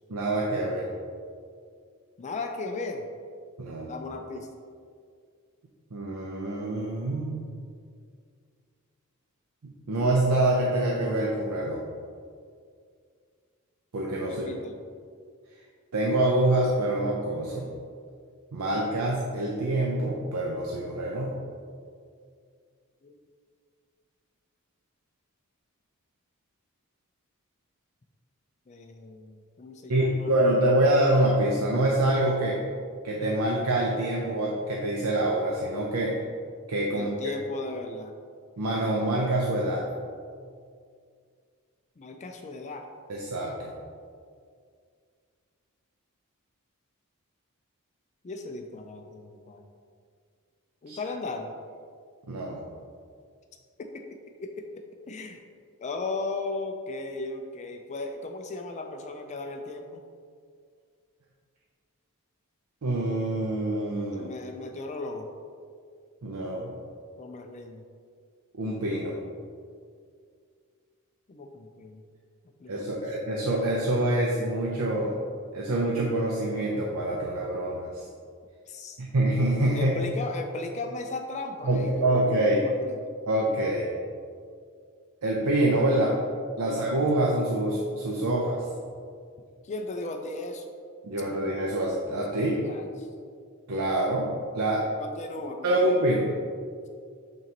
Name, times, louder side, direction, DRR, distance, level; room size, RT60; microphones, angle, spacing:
voice 1, 0.1-0.9 3.6-3.9 5.9-7.4 9.6-11.8 13.9-14.5 15.9-17.7 18.5-21.4 29.9-32.6 33.0-36.2 36.7-37.3 38.6-39.9 43.1-43.7 50.9-51.0 52.3-52.6 62.8-64.3 66.2-66.7 68.5-69.2 72.7-75.1 75.5-78.0 79.0-80.1 81.6-82.6 83.3-83.9 85.2-86.2 86.6-88.6 91.0-92.6 93.7-94.8 95.6-96.3, right 1 dB, 85° right, -2 dB, 0.7 m, -26 dB
voice 2, 2.2-3.0 3.9-4.5 14.3-14.8 23.0-23.1 28.7-30.3 36.9-38.1 42.0-42.9 48.2-49.6 50.8-51.5 53.8-55.4 55.8-60.0 64.1-65.3 67.2-67.8 71.3-72.0 72.6-73.0 78.7-79.0 79.7-83.0 86.6-87.1 89.6-90.7 92.3-93.1 95.0-95.9, left 3 dB, 30° left, 4 dB, 0.4 m, -37 dB
8.8 x 3.8 x 2.9 m, 2.2 s
head